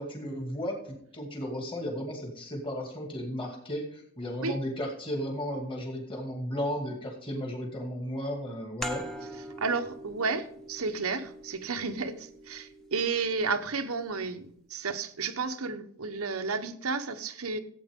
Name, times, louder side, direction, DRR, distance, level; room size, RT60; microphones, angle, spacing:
voice 1, 0.0-9.0, equal, 25° left, 1 dB, 2.6 m, -34 dB
sound 1, 8.8-14.1, equal, ahead, 1.1 m, -43 dB
voice 2, 9.6-17.6, right 4 dB, 80° right, 9 dB, 1.0 m, -32 dB
16.0 x 8.6 x 3.7 m, 0.66 s
head